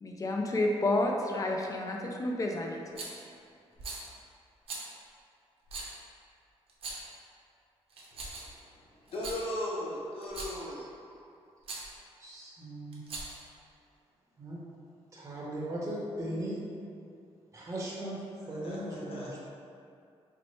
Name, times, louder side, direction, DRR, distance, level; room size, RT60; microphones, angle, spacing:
voice 1, 0.0-2.8, left 2 dB, 30° left, 1 dB, 0.4 m, -30 dB
Rattle, 3.0-3.2 3.8-4.1 4.7-4.9 5.7-5.9 6.7-7.2 7.9-8.6 9.1-9.4 10.2-10.6 11.6-11.9 12.9-13.5, right 3 dB, 60° right, 0.7 m, -40 dB
voice 2, 9.1-10.8 18.4-18.8 19.1-19.4, left 1 dB, 60° left, -6 dB, 0.8 m, -37 dB
voice 3, 10.6-10.9 12.2-13.0 14.4-14.6 15.1-16.6 17.5-19.4, right 1 dB, 30° right, -5 dB, 0.7 m, -38 dB
4.2 x 2.1 x 3.0 m, 2.4 s
cardioid pair, 100°, 11 cm